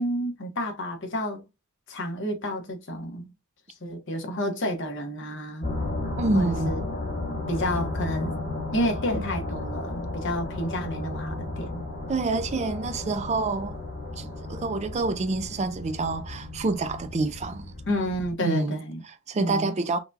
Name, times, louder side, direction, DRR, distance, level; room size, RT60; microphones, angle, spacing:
voice 1, 0.0-1.4 1.9-3.3 3.8-5.6 6.3-6.8 7.5-8.4 8.7-11.8 17.9-19.0 19.4-19.7, equal, 55° left, 1.0 m, -30 dB
sound 1, 5.6-18.3, left 2 dB, 40° left, 1.4 m, -34 dB
voice 2, 6.2-6.9 12.1-13.8 14.2-17.7 18.4-18.8 19.0-20.0, right 3 dB, 30° right, 0.4 m, -27 dB
5.8 x 2.3 x 2.7 m
head